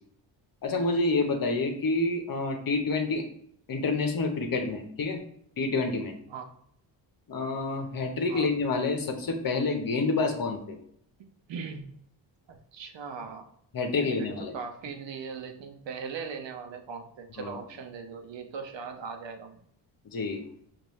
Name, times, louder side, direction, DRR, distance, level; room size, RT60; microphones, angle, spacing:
voice 1, 0.6-3.2 3.7-5.2 5.6-6.1 7.3-10.8 13.7-14.5 17.4-17.5 20.0-20.4, left 3 dB, 45° left, 4 dB, 0.9 m, -28 dB
voice 2, 11.5-11.9 12.5-13.5 14.0-19.6, right 5 dB, 70° right, 4 dB, 0.8 m, -39 dB
5.3 x 2.6 x 3.1 m, 0.68 s
cardioid pair, 70°, 47 cm